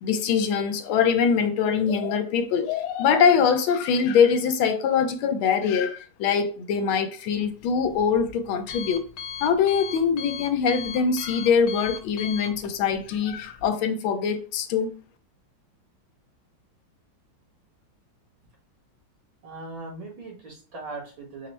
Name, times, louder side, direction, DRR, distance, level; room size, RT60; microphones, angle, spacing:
voice 1, 0.0-9.0 9.4-14.9, left 6 dB, 90° left, 1.5 m, -23 dB
Alarm, 7.3-13.7, left 7 dB, 65° left, 1.0 m, -39 dB
voice 2, 19.4-21.5, right 3 dB, 75° right, 2.4 m, -39 dB
4.9 x 2.0 x 4.2 m
omnidirectional pair, 2.2 m